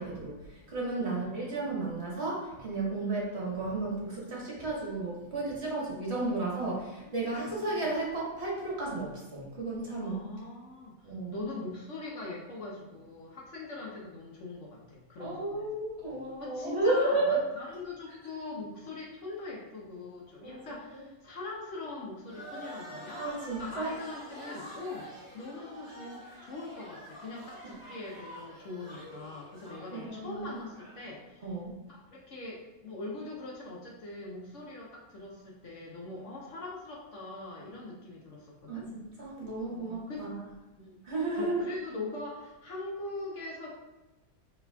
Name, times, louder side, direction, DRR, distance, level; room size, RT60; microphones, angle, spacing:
voice 1, 0.0-10.2 11.0-11.4 15.2-17.4 20.4-20.6 23.2-23.9 29.9-30.6 31.4-31.7 38.7-40.3 41.0-41.6, right 2 dB, 45° right, -5 dB, 1.4 m, -33 dB
voice 2, 1.0-1.7 7.0-7.7 10.0-15.7 16.4-23.2 23.6-25.1 25.3-31.5 31.9-38.9 39.7-40.3 40.8-41.0 41.4-43.7, left 2 dB, 60° left, -3 dB, 1.0 m, -42 dB
sound 1, 22.3-31.0, equal, 15° left, 1.2 m, -47 dB
6.9 x 3.3 x 2.3 m, 1.1 s
omnidirectional pair, 1.6 m